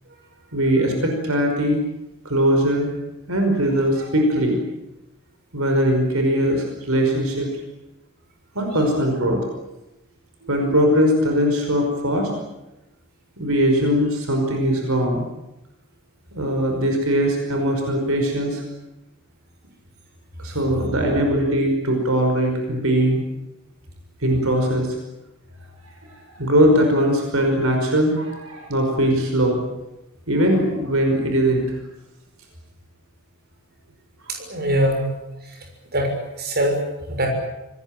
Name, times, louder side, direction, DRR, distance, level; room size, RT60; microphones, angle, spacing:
voice 1, 0.5-1.8 2.3-2.9 3.3-4.6 5.5-7.5 8.6-9.4 10.4-12.3 13.4-15.3 16.3-18.6 20.4-23.2 24.2-24.9 26.1-29.6 30.3-31.8, equal, 75° right, 3 dB, 5.4 m, -20 dB
voice 2, 34.3-35.1 35.4-35.6 35.9-36.8 37.1-37.3, right 1 dB, 45° right, 3 dB, 6.5 m, -23 dB
26.0 x 20.0 x 9.1 m, 0.94 s
head